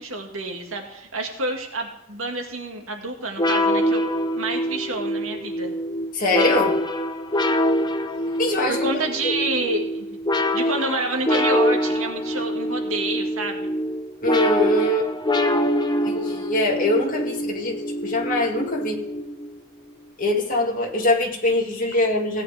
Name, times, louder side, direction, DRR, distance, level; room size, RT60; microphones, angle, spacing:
voice 1, 0.0-4.0 4.4-5.7 8.7-10.1 10.5-13.7, right 2 dB, 75° right, 3 dB, 1.9 m, -28 dB
sound 1, 3.4-19.6, left 1 dB, 20° left, 0.7 m, -24 dB
voice 2, 6.1-6.8 8.4-8.9 9.2-9.3 14.2-15.1 16.0-17.8 18.0-19.0 20.2-22.4, left 1 dB, 40° left, -1 dB, 2.2 m, -23 dB
16.5 x 9.2 x 3.5 m, 0.82 s
head